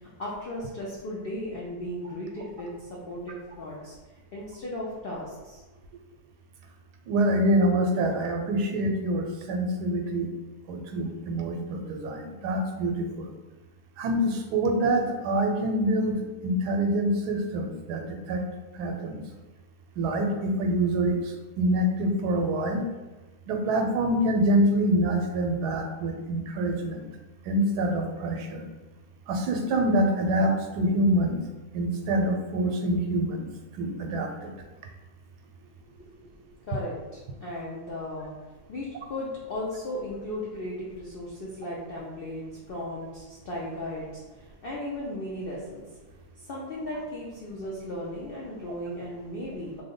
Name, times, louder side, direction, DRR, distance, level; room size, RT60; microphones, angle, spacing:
voice 1, 0.2-3.9 4.3-5.6 36.0-36.3 36.6-38.3 38.7-45.9 46.4-49.8, left 1 dB, 80° left, -5 dB, 0.5 m, -36 dB
voice 2, 7.1-10.3 10.7-13.3 14.0-16.1 16.4-18.4 18.7-19.2 20.0-22.9 23.5-27.1 27.5-28.6 29.3-31.4 31.7-33.5 33.8-34.5, right 1 dB, 90° right, 3 dB, 1.1 m, -26 dB
3.1 x 2.1 x 3.6 m, 1.2 s
omnidirectional pair, 1.7 m